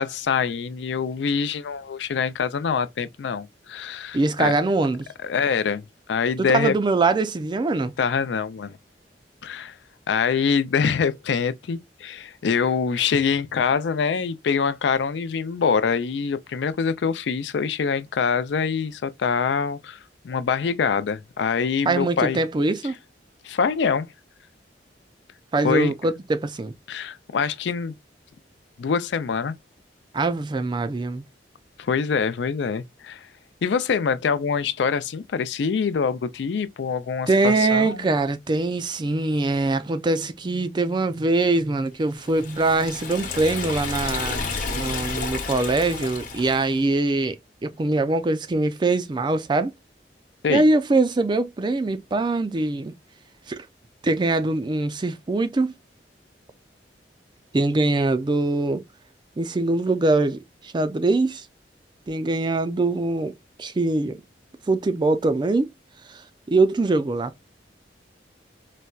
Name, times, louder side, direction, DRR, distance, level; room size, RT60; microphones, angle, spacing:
voice 1, 0.0-4.5 5.2-6.7 8.0-8.8 9.4-9.8 10.1-20.0 20.2-22.4 23.4-24.1 25.6-25.9 26.9-27.9 28.8-29.6 31.8-33.3 33.6-38.1 50.4-50.7, left 6 dB, 80° left, 0.4 m, -24 dB
voice 2, 4.1-5.1 6.4-7.9 21.9-23.0 25.5-26.7 30.1-31.2 37.3-47.4 47.6-49.7 50.5-52.9 53.5-53.7 54.0-55.7 57.5-58.8 59.4-61.5 62.1-63.3 63.6-64.2 64.7-65.7 66.1-67.5, right 2 dB, 25° right, 0.4 m, -23 dB
Liquid, 42.2-46.8, left 4 dB, 50° left, 0.9 m, -31 dB
4.1 x 2.2 x 2.3 m
head